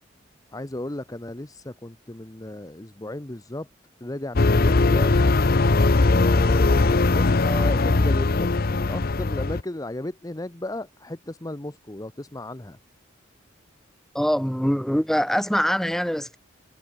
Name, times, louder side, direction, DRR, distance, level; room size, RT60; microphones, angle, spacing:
voice 1, 0.5-3.7 4.0-5.1 6.0-12.8, left 1 dB, 20° left, 0.9 m, -34 dB
sound 1, 4.4-9.6, left 3 dB, 50° left, 0.8 m, -20 dB
voice 2, 14.1-16.4, equal, ahead, 1.8 m, -23 dB
head